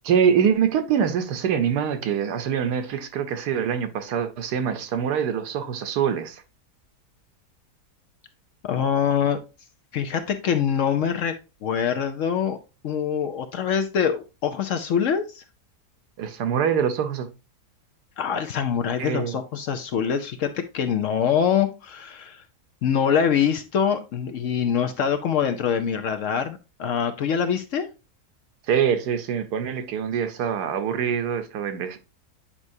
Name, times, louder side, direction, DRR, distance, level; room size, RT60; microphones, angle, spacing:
voice 1, 0.0-6.4 16.2-17.3 19.0-19.4 28.7-32.0, right 7 dB, 80° right, 1.4 m, -24 dB
voice 2, 8.6-9.4 9.9-11.3 11.6-12.6 12.8-15.4 18.2-22.4 22.8-27.9, left 7 dB, 65° left, 0.8 m, -24 dB
8.7 x 4.7 x 2.6 m
omnidirectional pair, 1.7 m